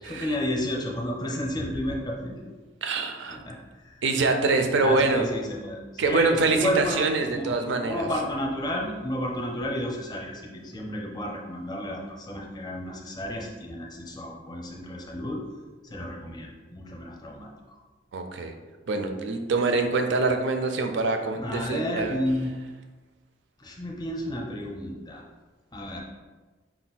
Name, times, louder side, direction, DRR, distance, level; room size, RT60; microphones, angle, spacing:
voice 1, 0.0-2.3 3.3-4.0 4.8-15.4 15.8-17.8 21.4-22.6 23.6-25.2 25.7-26.0, left 1 dB, 20° left, 0 dB, 0.6 m, -32 dB
voice 2, 2.8-3.4 4.0-5.3 6.0-8.1 18.1-18.5 18.9-22.2, right 3 dB, 70° right, 5 dB, 0.4 m, -25 dB
4.3 x 2.2 x 4.0 m, 1.3 s
head